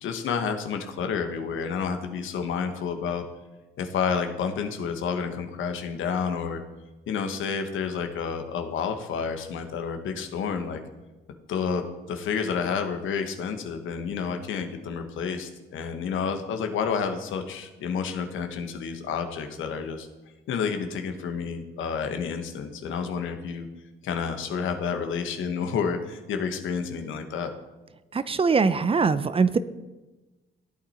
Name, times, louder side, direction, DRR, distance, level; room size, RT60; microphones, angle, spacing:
voice 1, 0.0-3.2 3.8-6.6 7.1-10.8 11.5-20.1 20.5-23.7 24.0-27.5, left 6 dB, 80° left, 6 dB, 1.3 m, -30 dB
voice 2, 28.1-29.6, right 5 dB, 30° right, 15 dB, 0.5 m, -22 dB
14.0 x 8.7 x 4.3 m, 1.1 s
cardioid pair, 90°, 20 cm